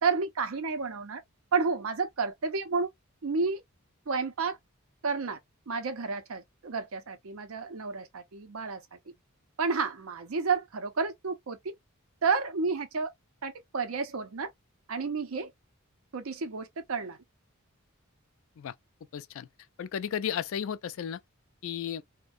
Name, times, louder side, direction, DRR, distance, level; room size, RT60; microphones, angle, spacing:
voice 1, 0.0-1.2 1.5-2.9 3.2-3.6 4.1-4.6 5.0-5.4 5.7-9.0 9.6-11.7 12.2-13.1 13.4-14.5 14.9-15.5 16.1-17.2, right 4 dB, 70° right, 0.6 m, -31 dB
voice 2, 19.1-19.5 19.8-21.2 21.6-22.0, left 8 dB, 60° left, 0.3 m, -33 dB
2.4 x 2.2 x 2.4 m
head